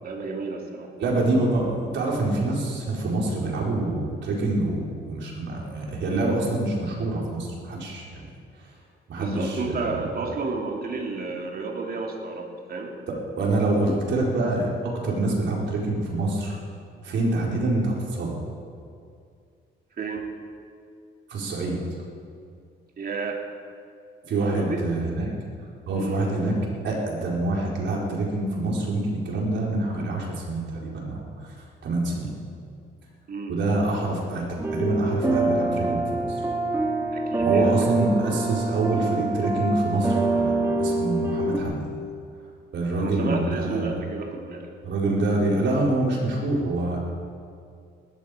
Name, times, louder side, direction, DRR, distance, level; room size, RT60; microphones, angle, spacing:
voice 1, 0.0-0.9 9.2-12.9 20.0-20.3 23.0-23.4 24.4-24.9 25.9-26.2 33.3-33.6 37.1-37.7 43.0-44.7, right 4 dB, 50° right, 1 dB, 2.8 m, -31 dB
voice 2, 1.0-8.3 9.1-9.9 13.1-16.6 17.0-18.4 21.3-21.8 24.2-25.3 25.9-26.6 26.8-31.5 31.8-32.3 33.5-34.4 34.7-36.5 37.4-41.8 42.7-43.9 44.8-47.0, right 2 dB, 70° right, -2 dB, 4.2 m, -26 dB
sound 1, 34.6-41.6, right 2 dB, 15° right, 2.5 m, -25 dB
18.5 x 13.5 x 5.0 m, 2.3 s
cardioid pair, 90°, 20 cm